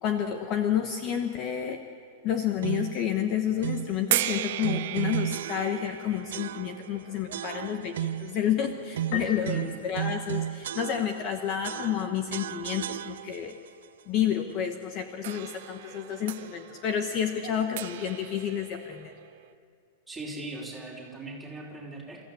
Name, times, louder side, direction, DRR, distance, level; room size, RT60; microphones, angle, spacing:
voice 1, 0.0-1.8 2.2-13.6 14.1-19.1, left 9 dB, 30° left, 6 dB, 1.1 m, -30 dB
sound 1, 2.6-3.0 3.6-4.0 4.6-6.0 6.3-6.9 7.3-8.4 8.9-11.3 11.6-13.5, right 11 dB, 80° right, 0.5 m, -34 dB
sound 2, 4.1-9.2 10.0-10.1 15.2-19.5, right 14 dB, 55° right, 0.7 m, -36 dB
Piano, 9.1-10.9, left 7 dB, 50° left, 2.5 m, -39 dB
voice 2, 9.1-9.8 20.1-22.2, right 2 dB, 5° right, -3 dB, 3.2 m, -40 dB
28.5 x 15.0 x 8.4 m, 2.3 s
supercardioid pair, 170°, 0 cm